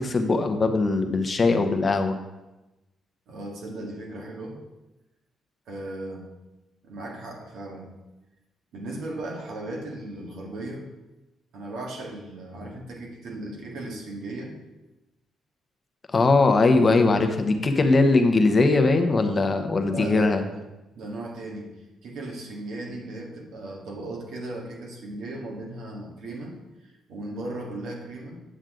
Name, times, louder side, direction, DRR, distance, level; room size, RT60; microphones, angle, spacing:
voice 1, 0.0-2.2 16.1-20.4, left 3 dB, 35° left, 6 dB, 0.9 m, -20 dB
voice 2, 3.3-4.6 5.7-6.3 6.8-7.9 8.7-10.9 11.5-14.6 19.9-20.6 20.9-26.6 26.8-28.4, right 2 dB, 75° right, -1 dB, 1.9 m, -37 dB
9.1 x 6.3 x 3.9 m, 1.0 s
cardioid pair, 90°, 0 cm